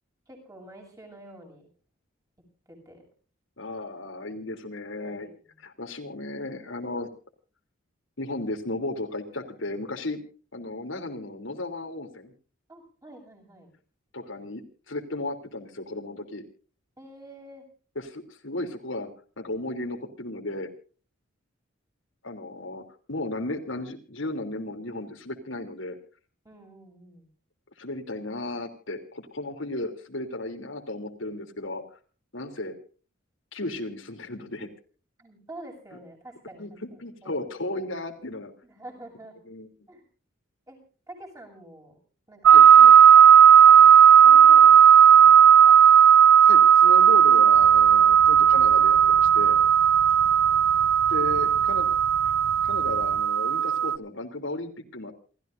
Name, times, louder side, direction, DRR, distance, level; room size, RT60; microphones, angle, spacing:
voice 1, 0.3-1.6 2.7-3.0 5.0-5.6 12.7-13.7 17.0-17.7 26.4-27.3 35.2-36.6 37.2-37.3 38.6-39.4 39.9-40.0 40.7-40.8 41.1-42.0 42.3-43.3 43.6-46.1 50.2-50.9 51.3-51.6, right 1 dB, 15° right, 2 dB, 7.3 m, -47 dB
voice 2, 3.6-5.3 5.6-7.1 8.2-10.2 10.5-12.3 14.1-16.4 17.9-19.1 19.4-20.7 22.2-26.0 27.8-31.8 32.3-32.7 33.5-34.7 36.6-38.5 39.5-39.7 42.5-42.7 46.5-49.6 51.1-51.9 52.6-55.1, left 2 dB, 70° left, 4 dB, 3.2 m, -34 dB
sound 1, 42.5-54.0, right 9 dB, 85° right, 0.6 m, -15 dB
sound 2, 47.5-53.2, equal, 55° right, 2.5 m, -44 dB
29.0 x 15.0 x 2.6 m, 0.40 s
head